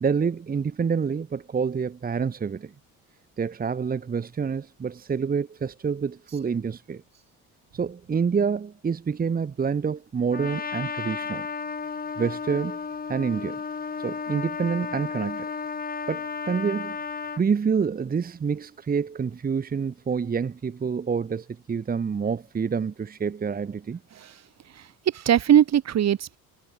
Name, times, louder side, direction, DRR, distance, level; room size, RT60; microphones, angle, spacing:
voice 1, 0.0-2.7 3.4-7.0 7.7-11.5 12.2-12.8 13.1-13.6 14.0-15.5 16.1-17.0 17.4-24.0, right 6 dB, 25° right, 1.3 m, -27 dB
Trumpet, 10.3-17.4, left 5 dB, 25° left, 2.5 m, -33 dB
voice 2, 24.8-26.4, right 10 dB, 45° right, 2.4 m, -21 dB
cardioid pair, 120°, 35 cm